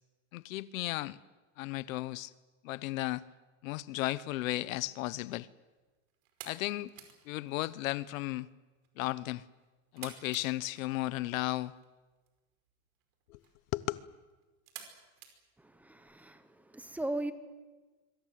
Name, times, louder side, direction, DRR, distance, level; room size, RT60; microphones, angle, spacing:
voice 1, 0.3-1.2 1.6-2.3 2.6-3.2 3.6-5.5 6.4-6.9 7.3-8.5 9.0-9.4 9.9-11.7 13.3-13.4 13.7-14.0, left 17 dB, 70° left, 1.1 m, -34 dB
sound 1, 4.8-16.2, right 9 dB, 80° right, 5.3 m, -55 dB
voice 2, 15.6-17.3, right 1 dB, 5° right, 0.9 m, -38 dB
25.5 x 24.0 x 7.7 m
supercardioid pair, 165°, 41 cm